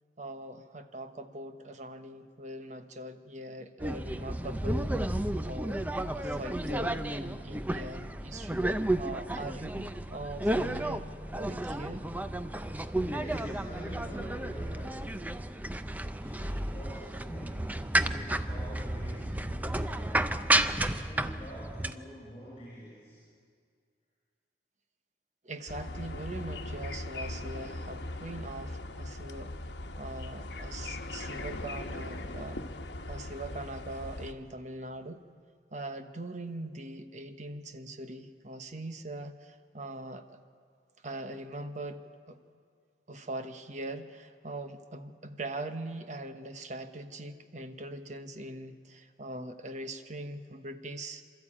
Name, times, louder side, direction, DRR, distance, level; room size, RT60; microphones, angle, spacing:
voice 1, 0.2-5.9 6.1-8.7 9.0-12.1 25.4-29.5 30.0-32.6 33.1-35.2 35.7-40.4 41.0-42.4 43.1-51.2, right 1 dB, 40° right, 8 dB, 1.2 m, -42 dB
sound 1, 3.8-21.9, right 1 dB, 10° right, 0.6 m, -32 dB
voice 2, 12.9-15.2 16.2-20.2 20.7-23.2, equal, 30° left, -6 dB, 6.5 m, -46 dB
sound 2, 25.7-34.3, left 2 dB, 70° left, 1.2 m, -39 dB
28.0 x 13.0 x 8.7 m, 2.1 s
head